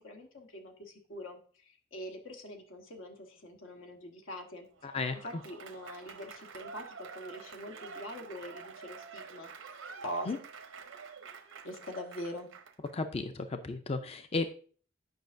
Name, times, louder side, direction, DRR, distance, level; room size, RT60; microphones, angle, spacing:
voice 1, 0.0-1.4 1.9-4.7 5.1-9.5 10.0-10.3 11.6-12.5, equal, 90° left, 3 dB, 1.3 m, -43 dB
Applause / Crowd, 4.7-12.9, right 5 dB, 85° right, 0.7 m, -48 dB
voice 2, 4.8-5.2 10.3-10.4 12.9-14.5, left 3 dB, 30° left, 9 dB, 0.4 m, -34 dB
9.2 x 5.6 x 2.5 m, 0.43 s
head